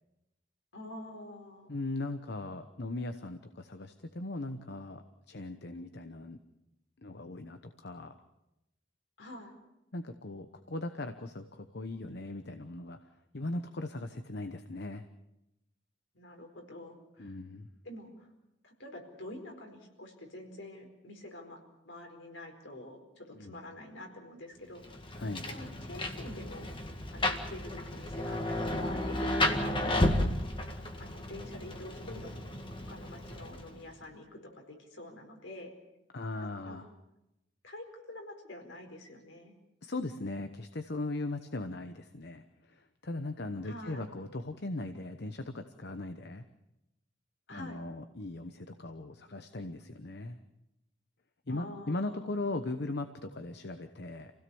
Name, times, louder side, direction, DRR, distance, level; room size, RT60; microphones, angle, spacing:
voice 1, 0.7-1.8 9.2-9.5 16.1-17.4 17.8-18.3 18.6-25.0 25.4-26.7 27.1-30.2 31.0-32.4 32.7-35.7 36.6-36.9 37.6-39.5 43.6-44.1 47.5-47.8 51.5-52.3, left 1 dB, 80° left, 3 dB, 4.6 m, -47 dB
voice 2, 1.7-6.4 7.0-8.2 9.9-15.0 17.2-17.7 23.3-23.6 25.1-25.5 36.1-36.9 39.8-46.4 47.5-50.4 51.5-54.3, left 2 dB, 60° left, 8 dB, 1.0 m, -39 dB
Rain, 24.8-33.9, left 1 dB, 25° left, 1.9 m, -33 dB
27.5 x 17.0 x 7.1 m, 0.90 s
head